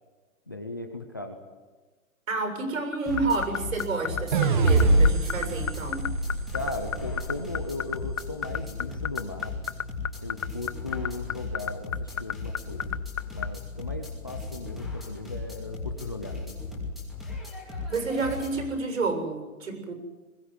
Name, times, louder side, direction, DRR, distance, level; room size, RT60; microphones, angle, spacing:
voice 1, 0.5-1.4 6.5-9.7 10.2-12.9 13.3-16.6, left 2 dB, 15° left, 5 dB, 0.6 m, -37 dB
voice 2, 2.3-6.1 17.9-19.9, right 3 dB, 70° right, 5 dB, 7.3 m, -30 dB
sound 1, 2.9-13.5, left 9 dB, 65° left, 0.9 m, -29 dB
sound 2, 3.1-18.7, left 3 dB, ahead, 2.6 m, -37 dB
sound 3, 4.3-7.6, right 2 dB, 35° right, 2.0 m, -24 dB
21.5 x 16.5 x 9.8 m, 1.3 s
hypercardioid pair, 180°, 42 cm